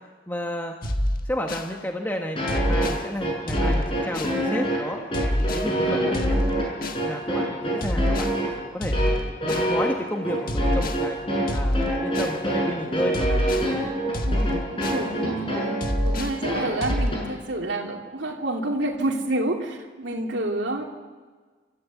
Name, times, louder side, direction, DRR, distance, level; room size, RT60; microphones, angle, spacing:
voice 1, 0.3-0.8 1.2-5.0 5.5-6.5 7.0-11.2 11.5-13.3, equal, 10° left, 2 dB, 1.3 m, -32 dB
sound 1, 0.8-1.7 2.5-3.0 3.5-4.4 5.1-5.7 6.1-7.0 7.8-8.4 8.8-9.7 10.5-11.0 11.5-12.4 13.1-13.7 14.1-15.1 15.8-16.4 16.8-17.1, equal, 45° left, 1.6 m, -26 dB
sound 2, 2.4-17.2, right 1 dB, 25° left, 6.9 m, -26 dB
voice 2, 14.2-15.7 16.0-20.8, right 1 dB, 65° right, 0 dB, 2.8 m, -29 dB
29.0 x 14.0 x 8.3 m, 1.4 s
head